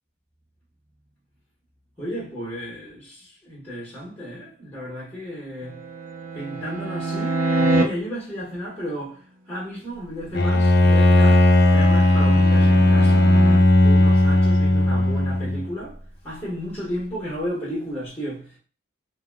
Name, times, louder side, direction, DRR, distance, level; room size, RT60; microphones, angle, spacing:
voice 1, 2.0-5.8 6.3-9.2 9.5-11.5 11.7-13.4 13.8-16.0 16.2-18.6, equal, 10° left, 1.1 m, -33 dB
sound 1, 5.6-7.8 11.2-13.6, right 2 dB, 85° right, 0.5 m, -26 dB
Bowed string instrument, 10.3-15.7, left 1 dB, 55° left, 0.4 m, -16 dB
3.9 x 2.0 x 2.2 m
head